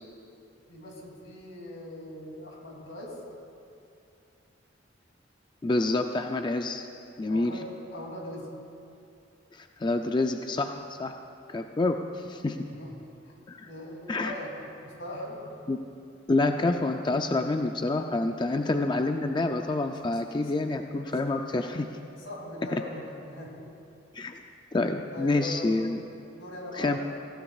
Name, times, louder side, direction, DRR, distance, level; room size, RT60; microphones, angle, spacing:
voice 1, 0.7-3.2 7.3-8.5 12.6-13.4 13.6-15.6 18.4-18.7 20.1-20.2 20.4-20.5 20.9-21.0 22.2-23.6 25.1-25.8 26.3-27.0, left 1 dB, 85° left, -1 dB, 2.8 m, -41 dB
voice 2, 5.6-6.9 7.2-7.5 9.5-11.1 11.5-12.6 13.5-13.7 14.1-14.3 15.7-15.8 16.3-21.9 22.7-22.8 24.1-24.4 24.7-26.0 26.8-27.0, left 2 dB, 25° left, 5 dB, 0.4 m, -27 dB
21.0 x 16.0 x 2.4 m, 2.6 s
head